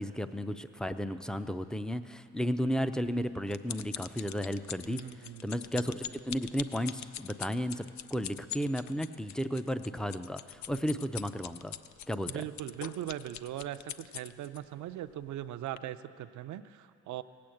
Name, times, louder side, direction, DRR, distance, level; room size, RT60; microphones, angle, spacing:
voice 1, 0.0-5.0 5.4-11.7 12.1-12.3, equal, ahead, 11 dB, 0.5 m, -33 dB
sound 1, 2.9-14.6 15.2-15.4 15.8-15.9, left 10 dB, 65° left, 0.5 m, -43 dB
voice 2, 4.8-5.5 12.3-17.2, right 12 dB, 75° right, 11 dB, 0.6 m, -40 dB
17.5 x 8.6 x 7.8 m, 2.7 s
cardioid pair, 90°, 30 cm